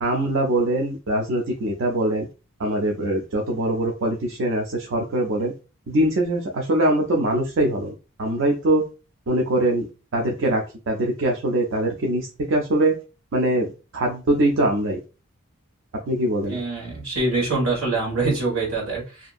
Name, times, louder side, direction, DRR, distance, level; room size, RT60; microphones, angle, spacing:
voice 1, 0.0-2.3 2.6-5.5 5.9-7.9 8.2-8.8 9.3-9.8 10.1-13.0 13.3-13.7 13.9-15.0 16.1-16.6, right 1 dB, 65° right, 0 dB, 0.5 m, -22 dB
voice 2, 16.5-19.3, right 3 dB, 85° right, -1 dB, 1.5 m, -24 dB
2.7 x 2.5 x 2.4 m, 0.32 s
head